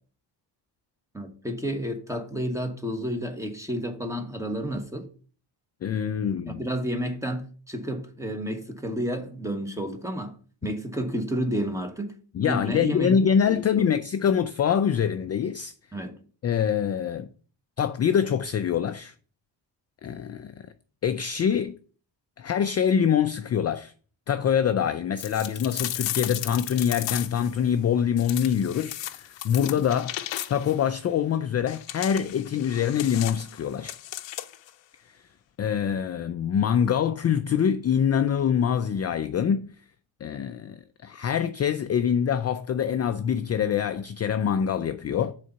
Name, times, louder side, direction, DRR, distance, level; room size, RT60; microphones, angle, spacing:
voice 1, 1.1-5.1 6.5-10.4 10.6-12.1 12.4-13.2 13.5-13.6 15.9-16.2, equal, 5° right, 1.1 m, -31 dB
voice 2, 5.8-6.6 12.3-15.7 16.4-17.3 17.8-19.1 20.0-20.7 21.0-21.7 22.4-23.9 24.3-30.2 30.5-34.0 35.6-39.7 40.2-45.3, left 8 dB, 35° left, 0.4 m, -25 dB
sound 1, 25.2-27.5 28.2-30.8 31.7-34.7, left 13 dB, 70° left, 0.7 m, -35 dB
6.4 x 4.0 x 5.5 m
cardioid pair, 110°, 45 cm